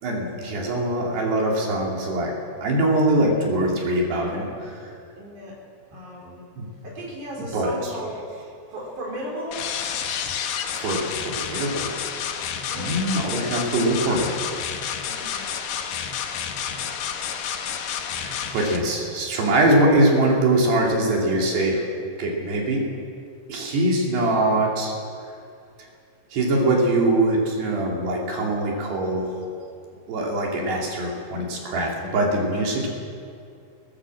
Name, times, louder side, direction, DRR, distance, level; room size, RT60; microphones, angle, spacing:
voice 1, 0.0-2.3 2.6-4.8 6.6-6.7 7.4-7.9 10.8-11.9 12.7-14.4 18.2-21.8 22.2-22.8 23.5-25.0 26.3-29.3 30.1-32.9, right 1 dB, 65° right, -2 dB, 4.6 m, -22 dB
voice 2, 5.2-5.6 5.9-6.5 6.8-8.2 8.7-9.6 12.7-13.7 15.1-15.4 23.9-24.0, equal, 40° right, -3 dB, 5.5 m, -36 dB
sound 1, 9.5-18.8, left 8 dB, 70° left, 2.9 m, -30 dB
20.0 x 17.5 x 7.6 m, 2.4 s
omnidirectional pair, 5.4 m